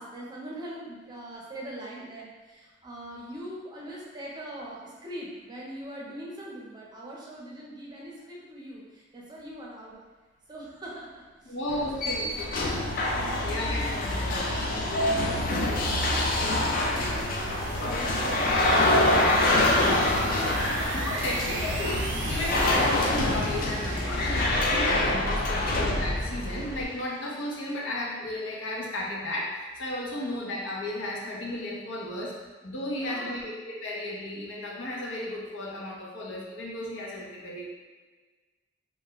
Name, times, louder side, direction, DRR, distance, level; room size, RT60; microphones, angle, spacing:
voice 1, 0.0-10.0 10.5-12.4 13.1-13.7 14.4-17.5 17.8-18.9 19.2-20.3 20.6-20.8 30.1-30.5 32.9-33.4, right 1 dB, 20° right, -4 dB, 0.6 m, -42 dB
voice 2, 11.5-12.5 13.4-14.5 20.9-32.4 32.6-37.6, left 1 dB, 85° left, -3 dB, 0.7 m, -34 dB
sound 1, 11.7-26.8, left 1 dB, 45° left, 0.3 m, -26 dB
sound 2, 12.1-27.7, right 3 dB, 70° right, 0.3 m, -40 dB
2.5 x 2.1 x 3.7 m, 1.3 s
head